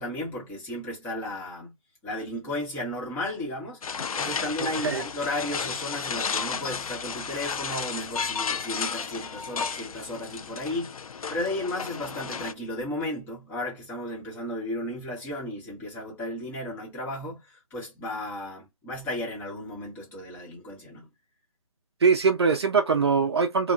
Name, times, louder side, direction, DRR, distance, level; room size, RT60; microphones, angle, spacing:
voice 1, 0.0-1.7 2.0-3.8 4.1-10.9 11.3-17.4 17.7-21.1, left 1 dB, 10° left, 1.1 m, -34 dB
sound 1, 3.8-12.5, left 6 dB, 70° left, 0.4 m, -33 dB
voice 2, 4.6-5.0 22.0-23.7, right 5 dB, 45° right, 0.5 m, -22 dB
2.8 x 2.2 x 2.4 m
figure-of-eight pair, 150°, 19 cm